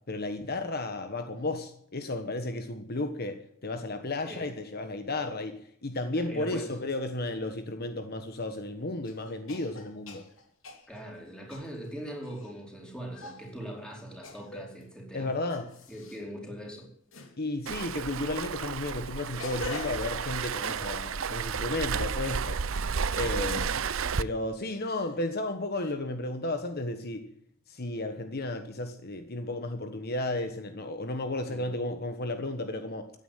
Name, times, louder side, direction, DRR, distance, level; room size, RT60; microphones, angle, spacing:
voice 1, 0.1-10.3 15.1-15.7 17.4-22.6 23.1-23.9 24.2-27.2 27.7-33.1, left 2 dB, 50° left, 1.3 m, -33 dB
voice 2, 6.1-6.8 10.9-15.3 15.9-16.9 31.5-31.7, equal, 5° left, 4.5 m, -41 dB
sound 1, 8.3-8.4 9.0-12.5 13.1-13.5 14.2-14.8 15.5-16.2 17.1-17.4 18.5-21.1 21.5-22.4 23.1-23.6 24.7-25.2 25.7-25.9, left 2 dB, 80° left, 3.0 m, -44 dB
Waves surf, 17.7-24.2, right 6 dB, 85° right, 0.7 m, -32 dB
15.5 x 9.6 x 9.1 m
head